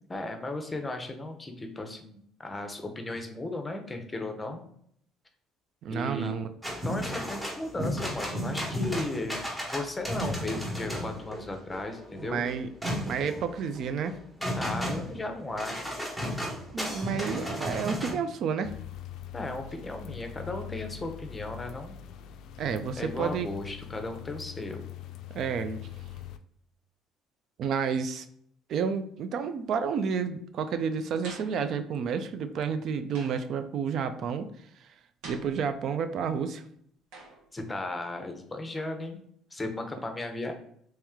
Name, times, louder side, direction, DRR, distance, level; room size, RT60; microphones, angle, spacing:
voice 1, 0.1-4.7 5.9-6.3 6.8-12.4 14.5-16.0 19.3-22.0 23.0-24.8 37.5-39.2 39.5-40.5, left 2 dB, 15° left, 6 dB, 0.7 m, -36 dB
voice 2, 5.8-6.5 12.2-14.2 16.7-18.7 22.6-23.5 25.3-25.8 27.6-28.3 28.7-34.5 34.8-34.9 35.2-36.6, right 6 dB, 60° right, 10 dB, 0.3 m, -30 dB
sound 1, 6.6-18.1, equal, 10° right, 1.2 m, -34 dB
sound 2, 18.6-26.4, left 11 dB, 70° left, 0.3 m, -42 dB
sound 3, 31.2-31.7 33.1-33.6 35.2-36.0 37.1-37.5, right 3 dB, 75° right, 1.3 m, -46 dB
3.1 x 3.0 x 3.5 m, 0.67 s
cardioid pair, 100°, 0 cm